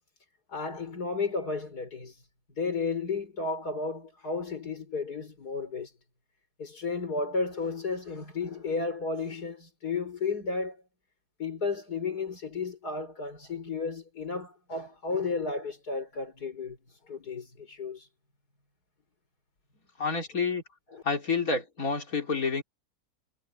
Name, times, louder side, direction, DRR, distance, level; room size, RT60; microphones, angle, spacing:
voice 1, 0.5-2.1 2.6-5.9 6.6-10.8 11.4-16.8 17.1-18.0 20.9-21.0, left 4 dB, 85° left, 5.5 m, -33 dB
voice 2, 20.0-20.6 21.0-22.6, left 4 dB, 65° left, 3.7 m, -28 dB
omnidirectional pair, 1.6 m